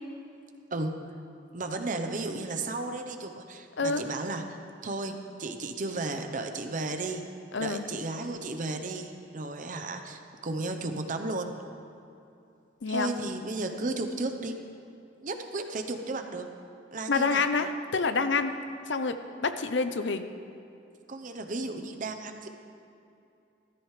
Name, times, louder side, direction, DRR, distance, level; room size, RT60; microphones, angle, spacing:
voice 1, 0.7-1.1 1.5-7.3 7.6-11.5 12.9-14.6 15.2-16.5 16.9-17.5 21.1-22.5, right 2 dB, 45° right, 6 dB, 0.9 m, -34 dB
voice 2, 7.5-7.8 12.8-13.1 17.1-18.6 18.9-19.2 19.4-20.2, left 4 dB, 80° left, 9 dB, 0.7 m, -27 dB
16.5 x 14.0 x 3.3 m, 2.7 s
head